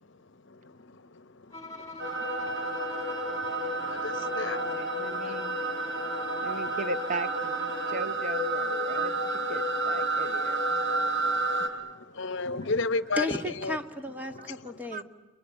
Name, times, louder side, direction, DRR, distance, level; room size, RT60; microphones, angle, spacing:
voice 1, 0.5-1.2 1.5-6.6 7.8-7.9 10.7-13.8 14.3-14.6, left 3 dB, 65° left, 13 dB, 1.1 m, -36 dB
Bowed string instrument, 1.5-8.2, left 2 dB, 15° left, 3.8 m, -43 dB
sound 1, 2.0-11.7, right 2 dB, 60° right, 4.6 m, -30 dB
voice 2, 4.4-5.6 6.4-7.6 7.9-10.6 14.4-14.5 14.9-15.0, right 2 dB, 40° right, 11 dB, 0.8 m, -37 dB
voice 3, 13.2-15.0, left 1 dB, 10° right, 5 dB, 1.8 m, -34 dB
29.5 x 22.0 x 8.9 m, 1.2 s
head